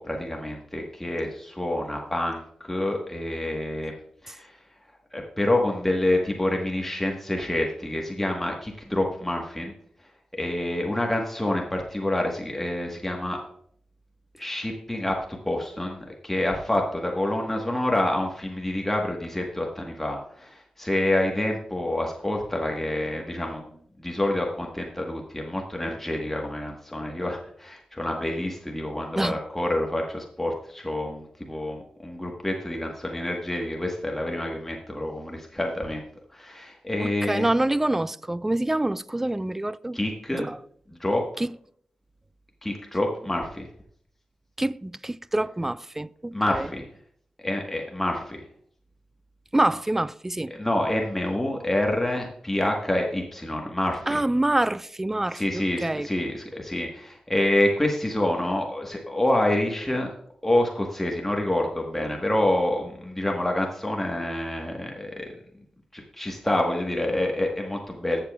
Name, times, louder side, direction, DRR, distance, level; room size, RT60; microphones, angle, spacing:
voice 1, 0.0-3.9 4.2-4.6 5.1-9.7 10.3-13.4 14.4-23.7 24.0-36.0 36.3-37.5 39.9-40.5 41.0-41.2 42.6-43.7 46.3-46.8 47.4-48.4 50.5-54.2 55.3-60.1 60.4-65.3 65.9-68.2, left 1 dB, 10° left, 1.3 m, -27 dB
voice 2, 37.0-40.0 40.3-40.6 41.4-41.5 44.6-46.7 49.5-50.5 54.1-56.1, right 1 dB, 15° right, 0.3 m, -26 dB
15.0 x 6.8 x 2.3 m
cardioid pair, 65°, 2 cm